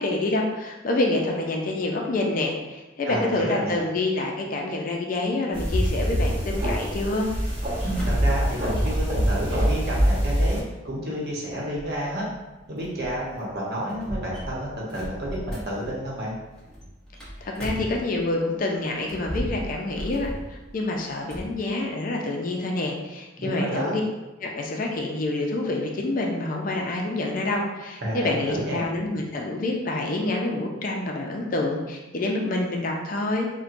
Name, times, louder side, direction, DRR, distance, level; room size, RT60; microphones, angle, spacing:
voice 1, 0.0-7.3 17.4-24.0 24.4-33.5, left 2 dB, 45° left, 0 dB, 0.4 m, -27 dB
voice 2, 3.1-3.8 7.8-10.6 10.8-12.2 12.7-16.3 23.4-24.0 28.0-28.8, right 1 dB, 55° right, -4 dB, 0.9 m, -30 dB
sound 1, 5.5-10.6, equal, 30° right, 1.1 m, -24 dB
sound 2, 7.9-18.5 18.9-21.5, equal, 5° left, 0.8 m, -37 dB
4.3 x 2.2 x 2.5 m, 1.1 s
head